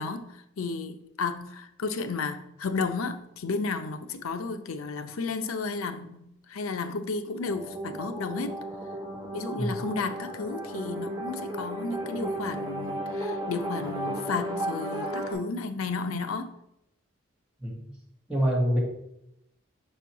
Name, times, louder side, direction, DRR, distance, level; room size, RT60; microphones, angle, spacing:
voice 1, 0.0-6.2 6.5-8.6 9.3-16.5, left 4 dB, 90° left, 9 dB, 0.6 m, -33 dB
sound 1, 7.4-15.3, right 1 dB, 20° right, 1.6 m, -34 dB
voice 2, 17.6-17.9 18.3-18.8, equal, 5° right, -5 dB, 1.8 m, -26 dB
5.3 x 4.4 x 4.6 m, 0.81 s
head